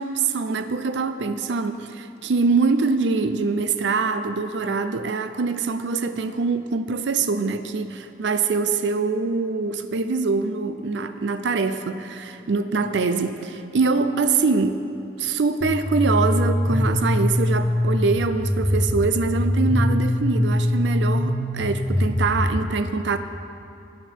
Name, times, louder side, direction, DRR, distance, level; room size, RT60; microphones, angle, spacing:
voice 1, 0.0-14.8 15.2-23.2, right 4 dB, 75° right, 10 dB, 0.5 m, -24 dB
sound 1, 15.6-22.5, left 1 dB, 30° left, 1.8 m, -23 dB
15.5 x 9.4 x 4.5 m, 2.6 s
head